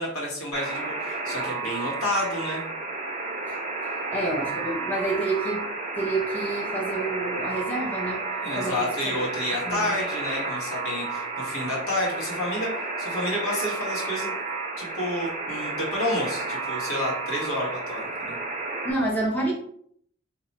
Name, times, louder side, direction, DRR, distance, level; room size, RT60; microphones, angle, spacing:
voice 1, 0.0-2.6 8.4-12.7 13.0-14.4 14.8-18.4, left 1 dB, 80° left, -4 dB, 1.4 m, -30 dB
Alarm, 0.5-18.9, right 3 dB, 35° right, 0.5 m, -32 dB
voice 2, 4.1-5.6 6.0-8.2 8.5-8.8 9.0-9.2 9.7-9.9 18.8-19.5, right 2 dB, 10° left, -4 dB, 0.6 m, -28 dB
2.8 x 2.3 x 4.1 m, 0.65 s
head